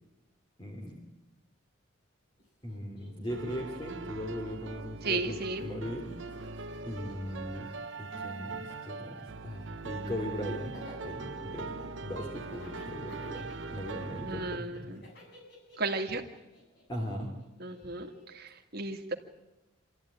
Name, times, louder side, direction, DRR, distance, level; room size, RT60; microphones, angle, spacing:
voice 1, 0.6-1.0 2.6-6.1 6.8-7.7 8.0-14.9 16.9-17.3, equal, 25° left, 1 dB, 3.1 m, -39 dB
Laughter, 2.4-2.5 2.7-5.0 5.3-18.3, left 1 dB, 55° left, 7.4 m, -54 dB
sound 1, 3.3-14.6, right 4 dB, 65° right, 0.9 m, -41 dB
voice 2, 5.0-5.7 14.3-15.0 15.8-16.2 17.6-19.1, right 3 dB, 50° right, 4 dB, 2.1 m, -34 dB
26.5 x 14.0 x 9.9 m, 1.0 s
head